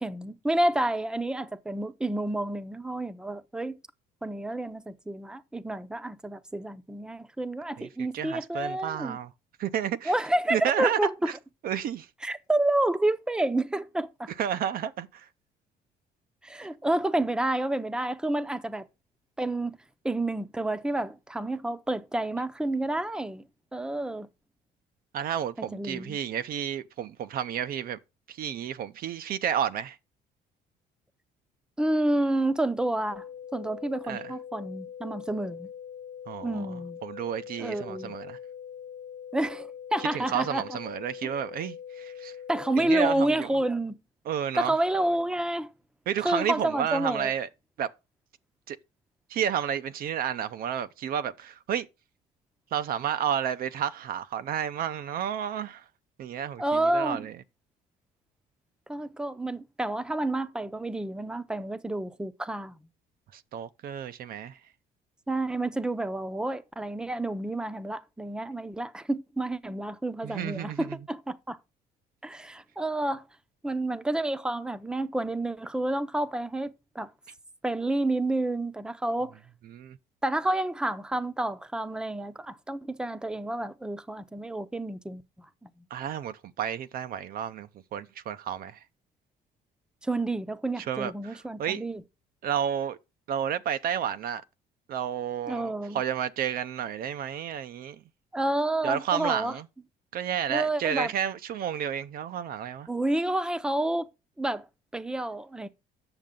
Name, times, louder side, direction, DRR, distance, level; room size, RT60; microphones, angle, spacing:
voice 1, 0.0-3.8 4.2-9.2 10.1-11.3 12.2-14.3 16.4-18.9 19.4-19.8 20.0-23.4 23.7-24.3 25.7-26.2 31.8-33.3 33.5-35.7 36.4-37.0 37.6-38.1 39.3-40.8 41.2-41.3 42.5-44.0 44.5-45.7 46.2-47.3 56.6-57.3 58.9-62.8 65.3-71.6 72.2-73.3 73.6-77.1 77.6-79.3 80.2-85.2 90.0-92.0 95.5-96.0 98.3-99.6 100.5-101.1 102.9-104.1 104.4-104.7 104.9-105.7, right 1 dB, 5° right, 0.7 m, -29 dB
voice 2, 7.8-9.3 9.6-10.1 10.5-11.0 11.6-12.1 14.4-15.3 25.1-28.0 28.3-30.0 34.1-34.3 36.3-36.6 37.0-38.4 40.1-42.4 42.8-43.5 44.3-44.7 46.1-47.5 47.8-47.9 48.7-48.8 49.3-51.9 52.7-55.8 56.2-57.3 63.3-64.6 70.2-71.0 79.7-80.0 85.9-88.8 90.8-91.1 91.6-91.8 92.4-93.0 93.3-94.4 94.9-98.0 98.8-99.7 100.1-102.9, right 9 dB, 60° right, 0.6 m, -31 dB
sound 1, 33.1-43.1, left 8 dB, 60° left, 0.7 m, -43 dB
8.9 x 6.6 x 3.8 m
cardioid pair, 110°, 17 cm